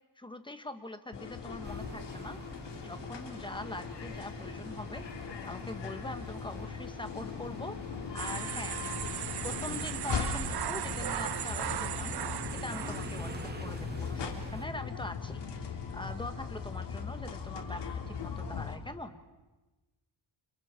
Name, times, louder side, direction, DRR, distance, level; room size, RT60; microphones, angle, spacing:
voice 1, 0.2-2.4 2.7-5.1 5.4-7.8 8.1-12.2 12.5-13.3 13.6-15.4 15.9-19.2, left 1 dB, 10° left, 8 dB, 1.6 m, -43 dB
sound 1, 1.1-18.8, left 6 dB, 65° left, 3.3 m, -39 dB
sound 2, 1.6-14.7, right 2 dB, 20° right, 2.5 m, -47 dB
sound 3, 8.2-13.5, right 11 dB, 55° right, 0.9 m, -37 dB
30.0 x 29.5 x 4.5 m, 1.2 s
cardioid pair, 115°, 46 cm